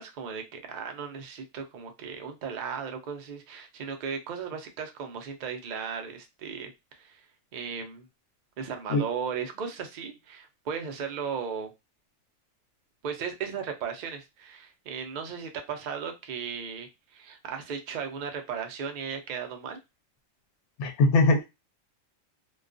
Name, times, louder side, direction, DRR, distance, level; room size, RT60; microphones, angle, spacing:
voice 1, 0.0-7.2 7.5-8.1 8.6-11.7 13.0-19.8, right 6 dB, 65° right, 5 dB, 0.4 m, -36 dB
voice 2, 20.8-21.4, left 2 dB, 65° left, 4 dB, 0.8 m, -21 dB
2.3 x 2.2 x 2.4 m, 0.23 s
omnidirectional pair, 1.4 m